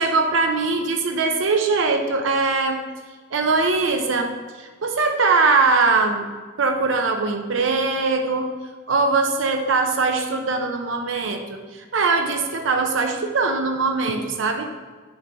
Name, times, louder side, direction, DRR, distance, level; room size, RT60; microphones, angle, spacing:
voice 1, 0.0-2.8 3.3-6.3 6.6-8.5 8.9-14.7, right 4 dB, 70° right, 5 dB, 0.6 m, -21 dB
7.8 x 5.3 x 3.4 m, 1.4 s
head